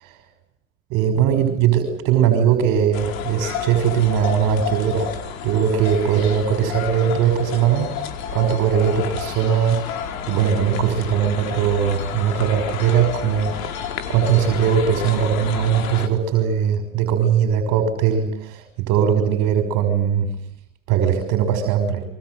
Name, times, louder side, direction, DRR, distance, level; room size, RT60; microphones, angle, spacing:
voice 1, 0.9-5.1 5.4-8.0 8.3-10.0 10.3-20.3 20.9-22.0, right 8 dB, 45° right, 6 dB, 6.1 m, -20 dB
sound 1, 2.9-16.1, left 8 dB, 70° left, 4.7 m, -31 dB
29.0 x 24.5 x 8.1 m, 0.67 s
hypercardioid pair, 120°, 43 cm